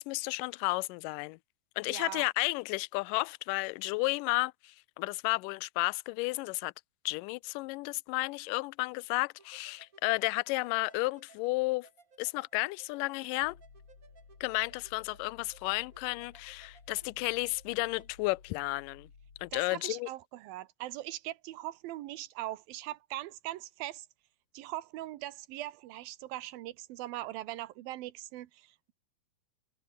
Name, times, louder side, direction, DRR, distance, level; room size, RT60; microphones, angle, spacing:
voice 1, 0.0-1.4 1.8-6.7 7.1-11.9 12.2-13.6 14.4-19.1 19.4-20.1, left 24 dB, 80° left, 2.0 m, -32 dB
voice 2, 1.9-2.2 19.5-24.1 24.5-28.9, right 15 dB, 85° right, 2.8 m, -41 dB
sound 1, 9.4-18.1, right 5 dB, 30° right, 1.8 m, -62 dB
sound 2, 13.4-19.6, left 5 dB, 45° left, 4.8 m, -56 dB
omnidirectional pair, 4.1 m